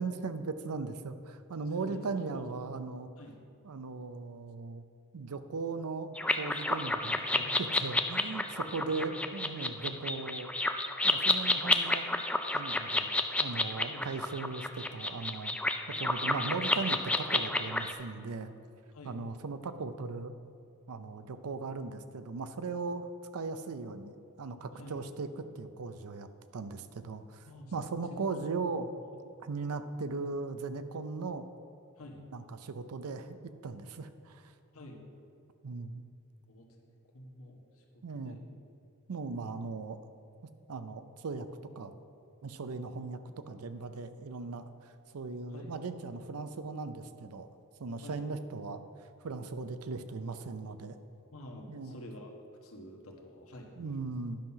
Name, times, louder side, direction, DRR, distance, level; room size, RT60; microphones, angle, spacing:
voice 1, 0.0-3.1 3.6-4.8 5.1-10.5 11.0-12.1 12.5-13.1 13.4-15.6 16.0-18.5 19.0-20.3 20.9-24.1 24.4-26.3 26.5-27.4 27.7-28.9 29.4-31.5 32.3-33.4 33.6-34.5 35.6-36.0 38.0-38.4 39.1-40.0 40.7-41.5 41.8-41.9 42.4-43.2 43.5-47.5 47.8-48.8 49.2-51.0 51.7-52.0 53.8-54.4, right 4 dB, 90° right, 11 dB, 0.5 m, -38 dB
voice 2, 1.7-2.5 3.2-3.4 7.3-7.6 8.6-9.2 9.6-10.0 13.9-14.1 18.9-19.2 24.7-25.0 27.5-27.7 28.1-28.4 32.0-32.3 34.7-35.1 36.5-38.4 45.5-45.7 48.0-48.2 51.3-52.3 52.6-54.0, left 1 dB, 75° left, 1 dB, 1.3 m, -49 dB
sound 1, 6.2-17.9, left 2 dB, 5° left, 0.3 m, -30 dB
10.5 x 5.6 x 5.8 m, 2.4 s
head